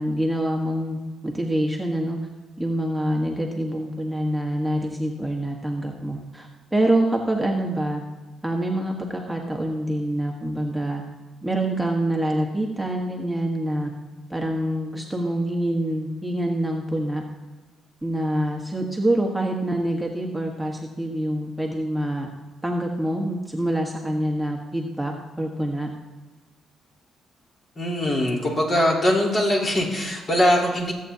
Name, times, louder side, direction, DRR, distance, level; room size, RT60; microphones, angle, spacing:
voice 1, 0.0-2.2 2.6-8.0 8.4-11.0 11.4-13.9 14.3-17.2 18.0-22.3 22.6-25.9, right 1 dB, 5° right, 0 dB, 1.3 m, -26 dB
voice 2, 27.8-30.9, left 1 dB, 45° left, -1 dB, 3.9 m, -21 dB
22.0 x 8.4 x 2.8 m, 1.3 s
cardioid pair, 90°, 0 cm